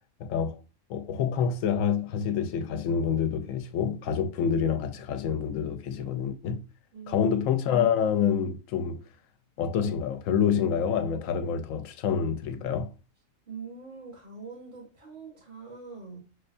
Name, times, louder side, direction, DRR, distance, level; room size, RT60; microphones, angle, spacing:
voice 1, 0.2-0.6 0.9-6.6 7.1-9.0 9.6-12.9, left 7 dB, 80° left, 1.0 m, -27 dB
voice 2, 6.9-7.4 13.5-16.2, right 5 dB, 40° right, 1.6 m, -43 dB
6.2 x 2.2 x 2.5 m
omnidirectional pair, 1.3 m